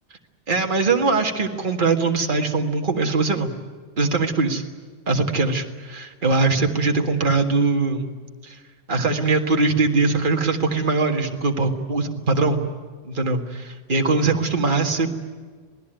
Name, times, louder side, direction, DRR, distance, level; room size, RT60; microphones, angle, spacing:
voice 1, 0.5-3.5 4.0-4.6 5.1-8.1 8.4-8.6 8.9-12.7 13.0-15.1, right 3 dB, 40° right, 3 dB, 2.0 m, -21 dB
27.0 x 19.0 x 9.1 m, 1.5 s
omnidirectional pair, 1.2 m